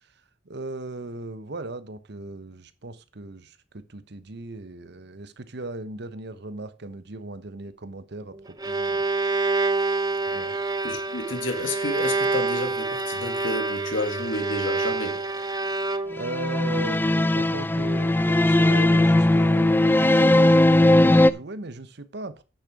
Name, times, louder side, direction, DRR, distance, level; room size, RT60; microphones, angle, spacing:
voice 1, 0.4-9.0 10.3-10.5 16.1-22.4, right 2 dB, 60° right, 1.0 m, -37 dB
Bowed string instrument, 8.3-16.4, right 3 dB, 20° right, 0.7 m, -27 dB
voice 2, 10.8-15.3, left 2 dB, 70° left, 1.9 m, -31 dB
sound 1, 16.2-21.3, left 1 dB, 10° left, 0.4 m, -18 dB
10.0 x 7.0 x 4.8 m
head